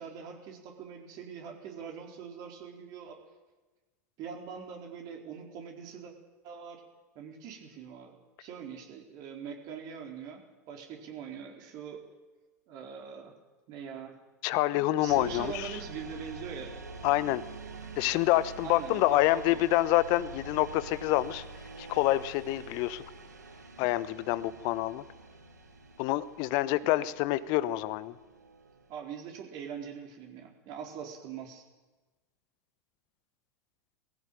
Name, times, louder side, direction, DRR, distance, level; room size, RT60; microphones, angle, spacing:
voice 1, 0.0-3.2 4.2-6.1 6.4-6.8 7.1-12.0 12.7-13.4 13.7-14.2 14.7-16.7 18.6-19.7 26.9-27.0 28.9-31.6, right 7 dB, 45° right, 2 dB, 4.3 m, -43 dB
voice 2, 14.4-15.7 17.0-17.4 18.0-21.4 21.8-23.0 23.8-25.0 26.0-28.1, left 16 dB, 50° left, 16 dB, 1.0 m, -27 dB
sound 1, 15.1-29.0, right 3 dB, 85° right, 1.9 m, -46 dB
20.0 x 15.5 x 9.2 m, 1.2 s
figure-of-eight pair, 85°, 9 cm